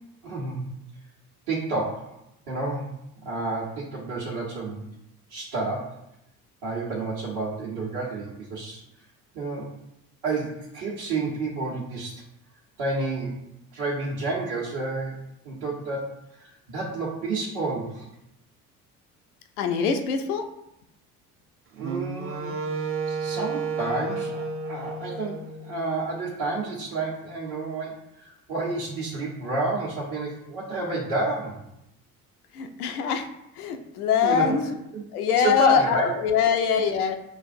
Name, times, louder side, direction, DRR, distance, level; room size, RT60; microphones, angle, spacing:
voice 1, 0.2-0.6 1.5-2.1 2.5-2.9 3.2-4.9 5.3-5.9 6.6-8.8 9.3-9.7 10.2-12.2 12.8-13.4 13.7-15.2 15.4-18.1 21.7-22.6 23.1-31.6 34.2-34.5 34.9-35.0 35.4-36.1, right 3 dB, 60° right, -6 dB, 1.2 m, -30 dB
voice 2, 19.6-20.4 32.5-33.3 33.5-34.8 35.1-37.1, left 7 dB, 80° left, 6 dB, 0.6 m, -23 dB
Wind instrument woodwind instrument, 21.8-26.0, right 4 dB, 30° right, 0.6 m, -32 dB
6.6 x 2.4 x 2.6 m, 0.82 s
hypercardioid pair, 55°, 44 cm